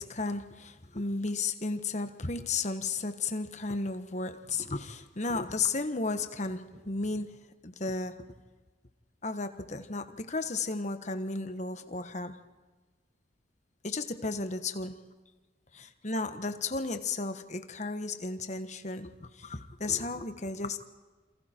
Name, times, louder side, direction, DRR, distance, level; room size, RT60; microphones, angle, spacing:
voice 1, 0.0-8.2 9.2-12.4 13.8-15.0 16.0-20.8, left 3 dB, 35° left, 9 dB, 1.3 m, -34 dB
28.0 x 28.0 x 4.5 m, 1.3 s
head